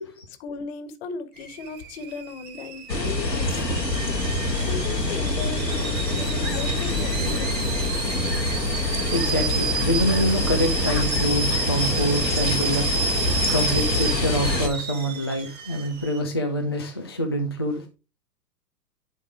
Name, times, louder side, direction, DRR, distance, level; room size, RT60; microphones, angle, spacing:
voice 1, 0.4-3.9 4.6-7.8, left 5 dB, 40° left, 1.5 m, -36 dB
Alarm / Boiling, 1.4-16.2, right 4 dB, 20° right, 1.9 m, -31 dB
sound 1, 2.9-14.7, left 2 dB, 85° left, 1.7 m, -25 dB
voice 2, 8.7-17.9, equal, 20° left, 0.3 m, -26 dB
10.5 x 4.0 x 4.8 m
figure-of-eight pair, 105°, 49 cm